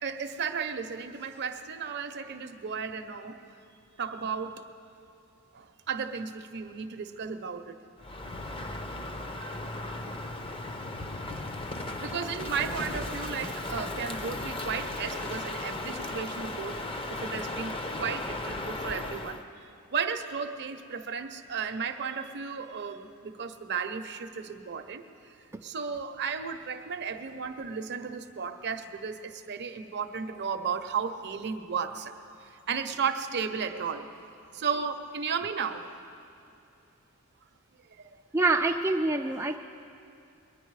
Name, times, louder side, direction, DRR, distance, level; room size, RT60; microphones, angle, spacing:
voice 1, 0.0-3.4 4.0-4.6 5.5-7.8 12.0-16.8 17.1-25.0 25.6-32.1 32.4-34.1 34.5-36.0 37.9-38.1 39.2-39.6, right 6 dB, 50° right, 8 dB, 0.7 m, -34 dB
Crow, 8.0-19.4, left 2 dB, 25° left, 0.7 m, -36 dB
voice 2, 38.3-39.6, right 2 dB, 10° right, 1 dB, 0.3 m, -25 dB
22.0 x 10.0 x 4.8 m, 2.7 s
head